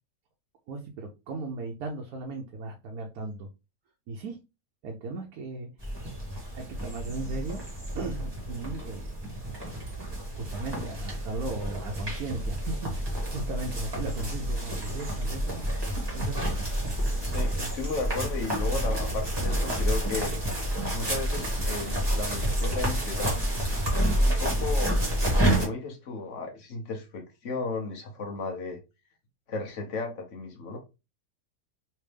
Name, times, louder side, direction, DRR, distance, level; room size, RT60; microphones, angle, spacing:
voice 1, 0.7-3.5 4.1-4.4 4.8-5.7 6.5-7.6 7.9-9.2 10.1-15.7 16.1-16.4, right 2 dB, 70° right, 1.1 m, -37 dB
sound 1, 5.8-25.7, right 1 dB, 15° right, 1.3 m, -29 dB
voice 2, 17.2-20.3 20.9-23.4 24.2-25.0 25.6-28.8 29.5-30.8, left 3 dB, 55° left, 1.2 m, -34 dB
3.3 x 3.1 x 3.2 m
omnidirectional pair, 1.6 m